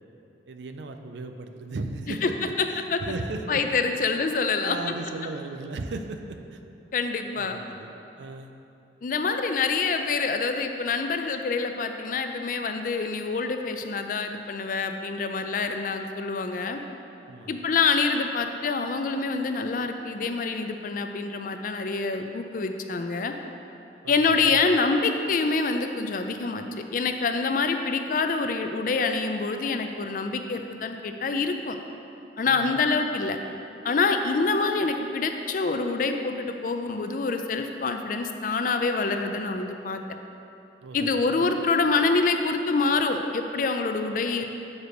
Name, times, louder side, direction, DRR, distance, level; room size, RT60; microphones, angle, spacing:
voice 1, 0.5-2.3 2.7-3.6 4.5-6.6 7.4-7.9 8.2-8.5 17.3-17.6 24.0-24.7 32.4-32.8 40.8-41.5 44.4-44.5, right 3 dB, 80° right, 6 dB, 0.5 m, -37 dB
voice 2, 3.5-4.8 6.9-7.6 9.0-16.8 17.5-23.3 24.1-26.6 26.9-31.8 32.4-33.4 33.8-40.0 40.9-44.4, left 4 dB, 50° left, 6 dB, 0.4 m, -26 dB
6.6 x 4.8 x 5.0 m, 2.8 s
head